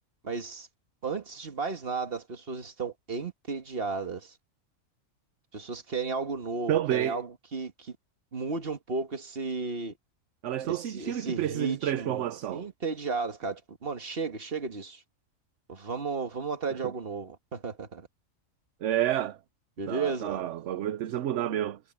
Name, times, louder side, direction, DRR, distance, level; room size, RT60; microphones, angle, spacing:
voice 1, 0.2-0.7 1.0-4.3 5.5-8.0 8.3-9.9 10.7-12.2 12.5-15.0 15.7-18.1 19.8-20.5, right 4 dB, 45° right, 1.9 m, -34 dB
voice 2, 6.7-7.2 10.4-12.7 16.8-16.9 18.8-19.4 19.9-21.8, right 12 dB, 70° right, 1.0 m, -29 dB
omnidirectional pair, 1.4 m